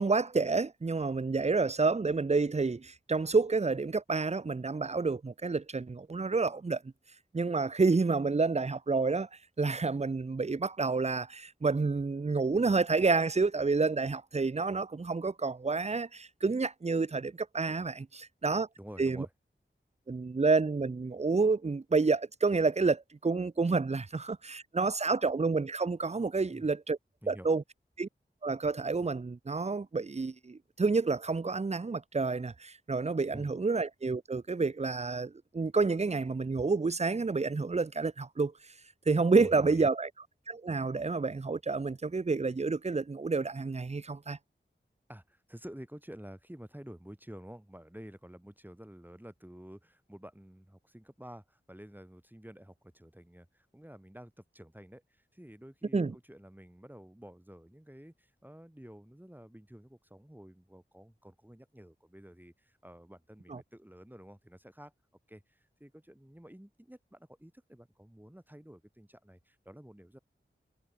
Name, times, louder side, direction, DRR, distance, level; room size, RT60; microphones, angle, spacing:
voice 1, 0.0-6.8 7.3-9.3 9.6-18.7 19.0-19.3 20.1-27.0 27.3-27.6 28.0-28.1 28.4-38.5 39.1-40.1 40.5-44.4 55.9-56.1 63.5-63.6, right 4 dB, 35° right, 0.6 m, -29 dB
voice 2, 18.8-19.3 26.5-26.7 27.2-27.5 33.3-33.5 39.4-39.9 45.1-64.9 65.3-70.2, equal, 10° right, 7.1 m, -50 dB
wide cardioid pair, 65°, 20 cm